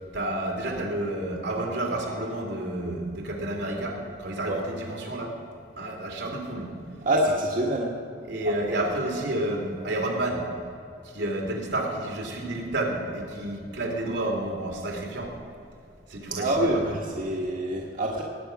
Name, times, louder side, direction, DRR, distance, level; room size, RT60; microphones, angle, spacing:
voice 1, 0.1-5.3 5.8-6.7 8.3-10.5 11.0-15.3 16.1-16.8, right 1 dB, 80° right, 1 dB, 2.8 m, -30 dB
voice 2, 7.0-7.9 8.4-8.8 16.3-18.2, right 1 dB, 50° right, -1 dB, 1.4 m, -26 dB
18.5 x 8.7 x 6.0 m, 2.5 s
head